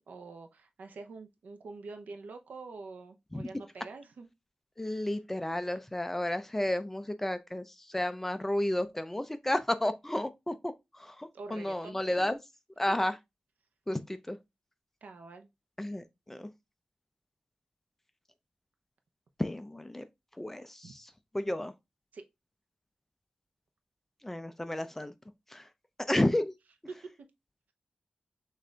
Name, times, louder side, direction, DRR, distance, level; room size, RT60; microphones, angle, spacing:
voice 1, 0.1-4.3 11.3-12.3 15.0-15.5 20.8-20.9 22.1-22.2 26.9-27.3, right 3 dB, 85° right, 0.7 m, -46 dB
voice 2, 4.8-10.5 10.9-12.4 12.8-13.1 13.9-14.4 15.8-16.5 19.4-20.0 20.4-20.9 21.3-21.7 24.2-25.1 25.5-25.6 26.1-26.5, left 1 dB, 10° left, 0.4 m, -32 dB
6.4 x 2.5 x 3.2 m
wide cardioid pair, 145°, 3 cm